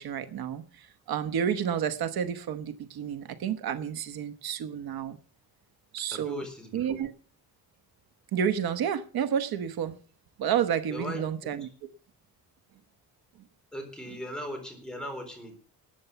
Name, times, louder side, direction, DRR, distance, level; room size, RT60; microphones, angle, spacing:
voice 1, 0.0-5.2 5.9-6.5 6.7-7.1 8.3-9.9 10.4-11.7, right 8 dB, 85° right, 1.1 m, -30 dB
voice 2, 6.1-7.0 10.9-11.2 13.7-15.5, left 1 dB, ahead, 3.9 m, -38 dB
13.0 x 9.3 x 6.8 m
wide cardioid pair, 155°, 36 cm